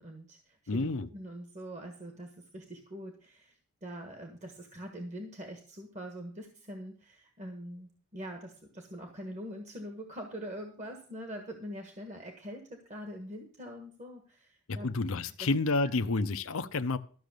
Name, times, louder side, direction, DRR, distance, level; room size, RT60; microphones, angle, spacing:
voice 1, 0.0-14.9 15.4-15.5 15.9-16.1, equal, 35° right, 4 dB, 1.5 m, -44 dB
voice 2, 0.7-1.1 14.7-17.0, left 3 dB, 85° left, 9 dB, 0.7 m, -30 dB
13.0 x 6.4 x 6.6 m, 0.43 s
head